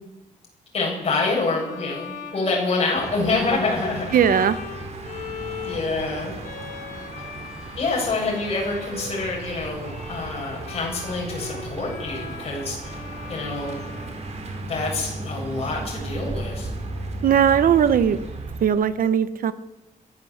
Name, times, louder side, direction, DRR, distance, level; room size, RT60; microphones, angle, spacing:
voice 1, 0.7-4.2 5.6-6.3 7.8-12.9 13.3-13.8 14.6-16.7, left 3 dB, 45° left, -2 dB, 7.6 m, -26 dB
Bowed string instrument, 1.4-14.8, left 5 dB, 70° left, 6.1 m, -39 dB
sound 1, 2.9-18.7, right 2 dB, 50° right, 4.0 m, -35 dB
voice 2, 4.1-4.6 17.2-18.2 18.6-19.5, right 8 dB, 85° right, 13 dB, 1.1 m, -18 dB
22.0 x 14.5 x 8.1 m, 0.99 s
wide cardioid pair, 170°, 14 cm